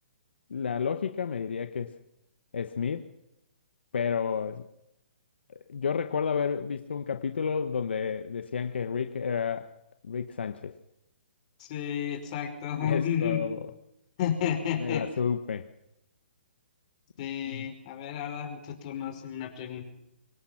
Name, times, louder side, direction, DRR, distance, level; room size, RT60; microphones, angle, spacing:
voice 1, 0.5-2.0 2.5-3.1 3.9-4.7 5.5-9.7 10.0-10.7 12.8-13.6 14.8-15.7 17.5-17.6, left 6 dB, 75° left, 1.3 m, -31 dB
voice 2, 11.6-13.4 14.2-15.0 17.2-19.9, left 9 dB, 40° left, 5.2 m, -31 dB
25.5 x 18.5 x 6.0 m
hypercardioid pair, 150°, 6 cm